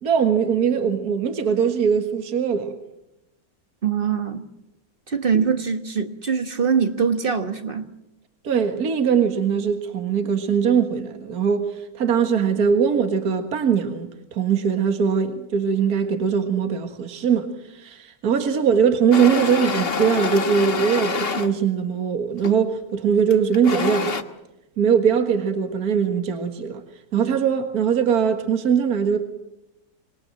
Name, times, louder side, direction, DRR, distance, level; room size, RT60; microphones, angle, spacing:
voice 1, 0.0-2.7 8.4-11.7 11.9-24.2 24.8-26.8 27.1-29.2, right 7 dB, 60° right, 2.2 m, -21 dB
voice 2, 3.8-4.4 5.1-7.9, right 6 dB, 35° right, 1.4 m, -23 dB
sound 1, 19.1-21.5 22.4-22.7 23.3-24.2, left 5 dB, 35° left, 1.4 m, -26 dB
26.0 x 22.0 x 7.7 m
omnidirectional pair, 1.9 m